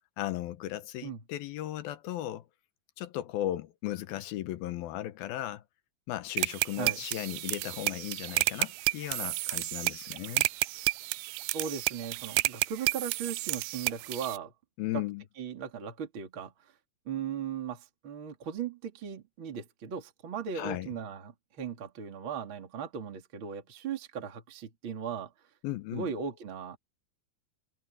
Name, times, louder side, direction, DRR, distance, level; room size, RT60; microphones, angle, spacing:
voice 1, 0.2-2.5 3.0-5.6 6.1-10.5 14.8-15.2 20.6-20.9 25.6-26.1, left 14 dB, 75° left, 2.7 m, -36 dB
sound 1, 6.4-14.4, right 22 dB, 90° right, 2.5 m, -31 dB
voice 2, 11.5-14.5 14.9-15.0 15.4-16.7 17.0-25.3 25.9-26.8, right 7 dB, 35° right, 3.1 m, -38 dB
omnidirectional pair, 4.5 m